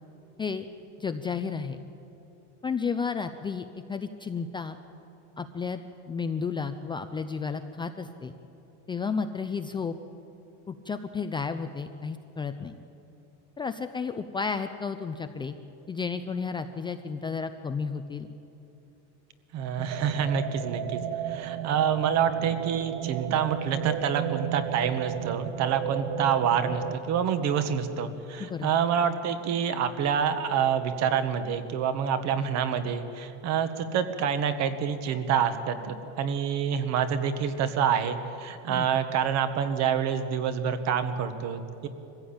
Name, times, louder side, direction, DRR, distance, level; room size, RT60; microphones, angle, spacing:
voice 1, 1.0-1.8 2.6-4.8 5.4-5.8 6.1-8.3 8.9-10.0 10.7-12.7 13.6-15.5 15.9-18.3 28.4-28.7 38.7-38.9, left 5 dB, 15° left, 8 dB, 0.4 m, -32 dB
voice 2, 19.5-21.0 21.2-41.9, right 7 dB, 50° right, 9 dB, 1.5 m, -27 dB
sound 1, 19.8-27.0, right 10 dB, 90° right, 1.1 m, -33 dB
23.0 x 15.5 x 8.8 m, 2.8 s
cardioid pair, 155°, 35 cm